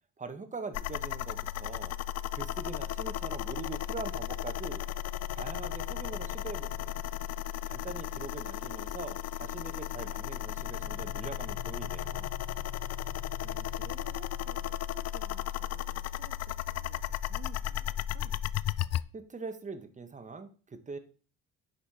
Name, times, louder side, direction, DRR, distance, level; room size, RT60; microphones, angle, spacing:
voice 1, 0.2-2.0 2.3-4.9 5.3-7.0 7.6-12.3 19.1-21.0, right 4 dB, 25° right, 8 dB, 1.2 m, -42 dB
sound 1, 0.7-19.0, left 12 dB, 55° left, 0.4 m, -35 dB
sound 2, 10.8-15.4, left 4 dB, 25° left, 1.1 m, -51 dB
voice 2, 13.4-18.5, right 7 dB, 50° right, 8 dB, 0.8 m, -54 dB
10.0 x 4.5 x 4.3 m, 0.39 s
cardioid pair, 90°, 30 cm